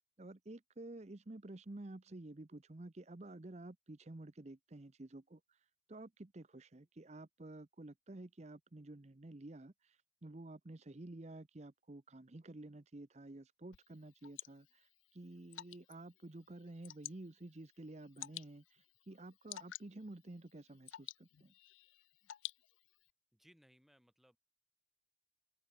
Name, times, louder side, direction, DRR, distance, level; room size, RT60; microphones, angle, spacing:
voice 1, 0.2-5.4 5.9-10.0 10.2-21.5, right 2 dB, 35° right, 0.7 m, -51 dB
Water / Drip, 13.7-23.1, left 15 dB, 85° left, 0.4 m, -53 dB
voice 2, 23.3-24.4, equal, ahead, 6.0 m, -67 dB
open air
head